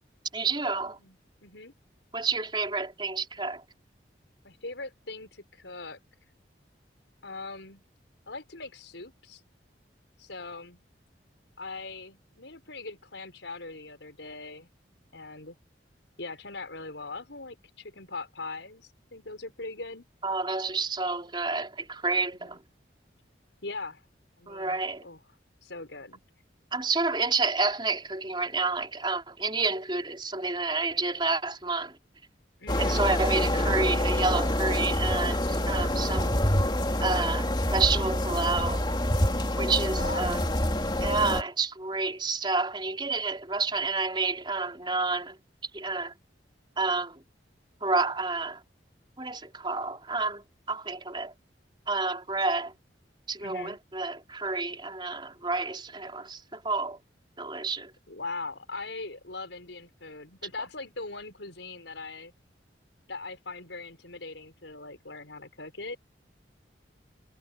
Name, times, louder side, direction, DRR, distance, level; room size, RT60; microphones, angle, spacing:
voice 1, 0.3-1.0 2.1-3.6 20.2-22.6 24.5-25.1 26.7-32.0 32.8-36.3 37.0-38.9 39.6-40.5 41.0-45.4 45.7-46.1 46.8-47.2 47.8-48.6 49.2-51.3 51.9-52.7 53.3-57.0 57.4-57.9, right 3 dB, 25° right, 4.3 m, -29 dB
voice 2, 1.0-1.7 4.4-6.0 7.2-7.8 8.3-9.4 10.2-10.8 11.6-14.7 15.1-15.6 16.2-20.1 22.4-22.6 23.6-24.0 24.4-25.2 25.6-26.2 32.6-33.1 39.9-40.4 53.4-53.8 58.1-62.3 63.1-66.0, left 3 dB, 85° left, 5.5 m, -41 dB
sound 1, 32.7-41.4, left 1 dB, 25° left, 3.0 m, -26 dB
head